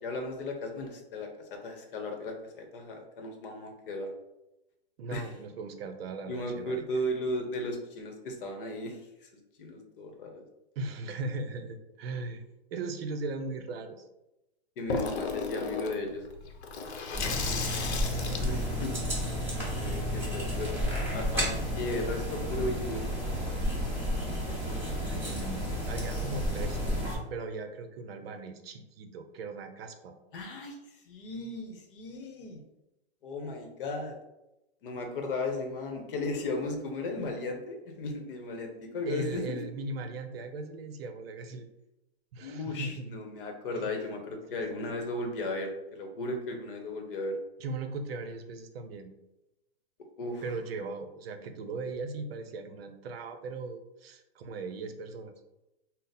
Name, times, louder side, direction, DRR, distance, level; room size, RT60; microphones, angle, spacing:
voice 1, 0.0-4.1 5.1-5.3 6.3-9.3 9.6-10.4 14.8-16.2 18.4-19.0 19.8-20.8 21.1-23.1 30.3-32.6 33.2-34.1 34.8-39.6 42.4-47.4 50.2-50.4, left 2 dB, 55° left, 4 dB, 0.8 m, -36 dB
voice 2, 5.0-6.8 10.8-12.4 12.7-14.1 17.2-17.7 25.0-30.1 39.1-41.7 42.3-43.2 43.7-43.9 44.6-44.8 47.6-49.1 50.4-55.3, right 3 dB, 65° right, 7 dB, 0.6 m, -38 dB
Water tap faucet / Sink (filling or washing), 14.9-20.1, left 5 dB, 85° left, 0.7 m, -36 dB
sound 1, 17.1-27.1, equal, 5° right, 1.1 m, -31 dB
3.8 x 2.0 x 4.0 m, 0.96 s
hypercardioid pair, 160°, 32 cm